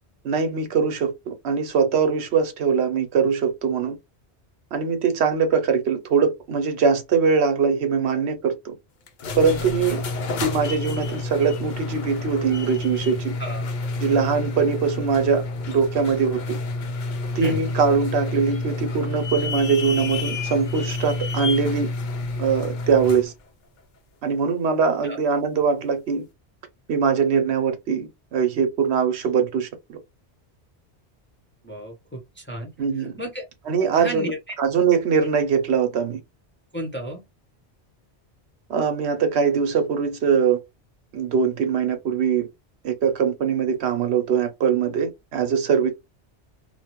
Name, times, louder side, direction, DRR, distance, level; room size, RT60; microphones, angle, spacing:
voice 1, 0.2-4.0 4.7-8.7 9.4-10.0 10.4-13.3 14.0-16.6 17.4-21.9 22.4-23.3 24.2-26.2 26.9-30.0 32.8-33.1 33.7-34.3 34.6-36.2 38.7-40.6 41.1-42.5 42.8-45.9, right 6 dB, 75° right, 0.9 m, -22 dB
sound 1, 9.1-23.3, left 3 dB, 55° left, 0.6 m, -29 dB
voice 2, 13.4-13.7 17.4-17.6 25.0-25.2 31.6-33.5 33.9-34.5 36.7-37.2, equal, 15° left, 0.6 m, -33 dB
3.0 x 2.0 x 2.9 m
omnidirectional pair, 1.1 m